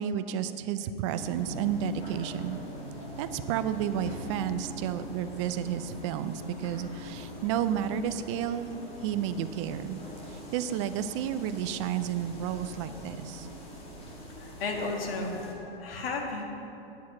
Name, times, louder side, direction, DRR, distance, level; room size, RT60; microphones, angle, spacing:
voice 1, 0.0-2.6 3.2-8.7 9.0-10.0 10.3-13.5, right 9 dB, 30° right, 11 dB, 0.4 m, -31 dB
sound 1, 1.1-15.5, equal, 20° left, 2.0 m, -43 dB
voice 2, 14.4-16.4, left 3 dB, 70° left, 1 dB, 2.0 m, -34 dB
8.6 x 7.1 x 7.3 m, 2.9 s
hypercardioid pair, 135°, 30 cm